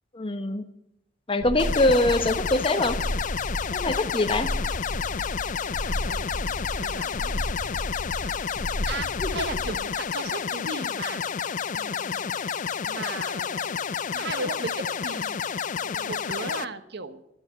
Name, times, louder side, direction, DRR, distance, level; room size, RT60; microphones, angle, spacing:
voice 1, 0.1-0.6 1.3-3.0 3.7-4.5 9.2-9.4, left 2 dB, 30° left, 9 dB, 1.1 m, -23 dB
sound 1, 1.4-9.9, equal, 85° left, 1.7 m, -33 dB
sound 2, 1.6-16.6, left 7 dB, 45° left, 0.5 m, -30 dB
voice 2, 5.6-7.4 8.2-8.4 8.9-11.2 11.7-12.5 12.9-15.4 15.8-17.2, right 3 dB, 65° right, 10 dB, 1.3 m, -37 dB
12.5 x 10.5 x 8.4 m, 0.80 s
head